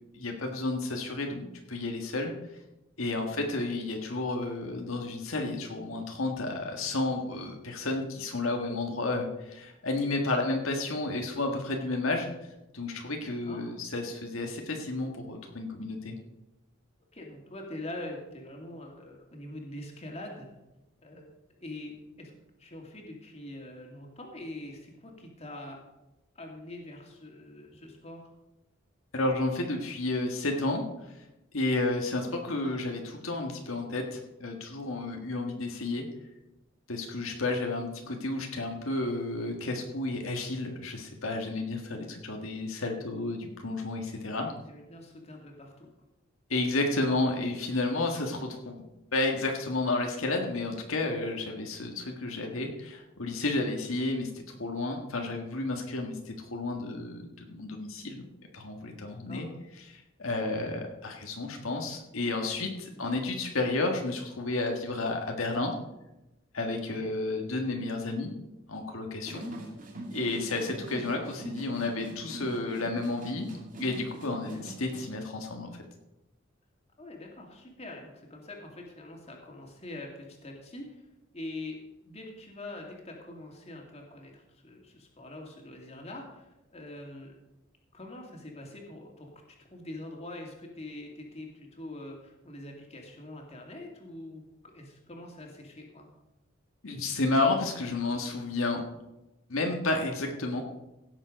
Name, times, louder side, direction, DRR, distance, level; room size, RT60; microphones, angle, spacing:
voice 1, 0.1-2.3 3.0-12.3 12.7-16.2 29.1-30.8 31.5-36.0 36.9-44.5 46.5-48.9 49.1-58.2 58.5-59.5 59.9-65.7 66.5-68.3 68.7-69.4 70.1-73.5 73.8-75.8 96.8-98.8 99.5-100.6, left 2 dB, 80° left, 2 dB, 1.7 m, -31 dB
voice 2, 17.1-20.5 21.0-21.3 21.6-22.3 22.6-25.8 26.3-28.3 44.4-45.9 59.1-59.4 62.9-63.1 66.9-67.1 74.4-74.6 77.0-81.0 81.3-81.8 82.0-87.3 87.9-89.3 89.6-96.1, left 1 dB, 30° left, 0 dB, 2.5 m, -44 dB
sound 1, 69.3-75.2, right 1 dB, 40° right, 2.4 m, -43 dB
16.5 x 7.3 x 5.2 m, 0.95 s
head